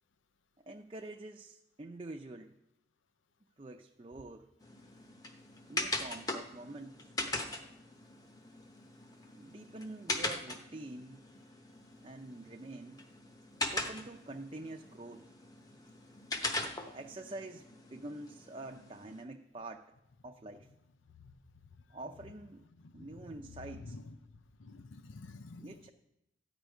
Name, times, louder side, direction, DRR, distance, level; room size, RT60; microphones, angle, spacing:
voice 1, 0.6-2.6 3.6-4.5 5.7-7.1 9.3-11.2 12.0-13.1 13.7-15.3 16.9-19.9 20.2-20.7 21.9-22.6 22.9-24.0 25.6-25.9, right 2 dB, 30° right, 0.5 m, -46 dB
sound 1, 4.6-19.2, left 2 dB, 20° left, 0.8 m, -41 dB
voice 2, 22.8-25.8, left 3 dB, 85° left, 0.6 m, -50 dB
13.5 x 5.0 x 9.1 m
head